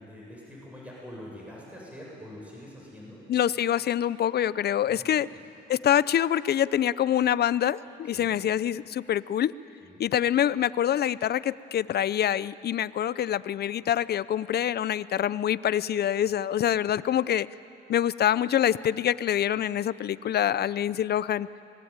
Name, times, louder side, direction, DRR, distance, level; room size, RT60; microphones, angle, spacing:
voice 1, 0.0-3.2 4.9-5.4 8.1-8.3 9.8-10.0, left 1 dB, 5° right, -4 dB, 7.5 m, -45 dB
voice 2, 3.3-5.3 5.7-9.5 10.0-17.5 17.9-21.5, left 10 dB, 55° left, 18 dB, 0.6 m, -25 dB
25.0 x 21.0 x 8.9 m, 2.8 s
cardioid pair, 90°, 20 cm